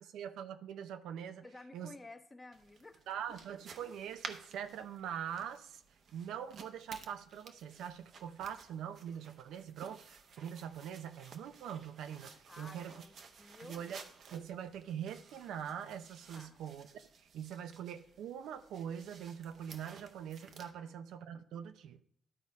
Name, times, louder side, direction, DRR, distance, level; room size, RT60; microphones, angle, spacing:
voice 1, 0.1-1.4 1.7-1.9 3.1-5.8 6.1-12.9 13.6-14.0 14.3-16.9 17.3-22.0, right 9 dB, 85° right, 10 dB, 0.5 m, -43 dB
voice 2, 1.4-3.4 12.5-13.8 16.3-16.6 20.8-21.0, left 2 dB, 20° left, 7 dB, 0.8 m, -54 dB
sound 1, 2.5-20.7, right 5 dB, 60° right, 0.9 m, -55 dB
12.0 x 4.1 x 4.7 m, 0.64 s
cardioid pair, 90°, 0 cm